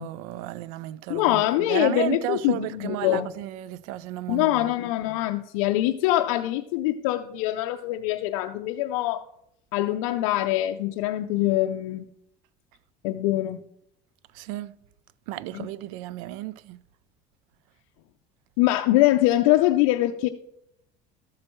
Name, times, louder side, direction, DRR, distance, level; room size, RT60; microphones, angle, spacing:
voice 1, 0.0-4.7 14.3-14.7 15.3-16.8, right 15 dB, 85° right, 0.4 m, -33 dB
voice 2, 1.1-3.3 4.3-9.2 9.7-12.1 13.0-13.6 15.5-15.7 18.6-20.3, left 15 dB, 85° left, 0.5 m, -23 dB
12.5 x 7.6 x 3.1 m
supercardioid pair, 115°, 17 cm